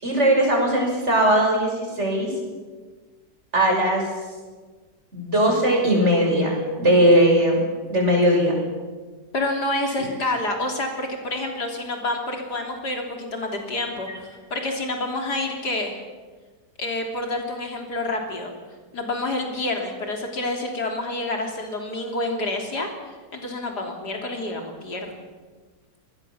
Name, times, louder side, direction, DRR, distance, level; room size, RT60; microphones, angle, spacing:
voice 1, 0.0-2.3 3.5-4.0 5.1-7.6 7.9-8.5 10.0-10.1, right 1 dB, 40° right, 1 dB, 6.4 m, -19 dB
voice 2, 9.3-16.0 16.8-18.5 18.9-25.2, left 2 dB, 70° left, 2 dB, 4.0 m, -28 dB
25.5 x 20.0 x 7.2 m, 1.4 s
omnidirectional pair, 1.8 m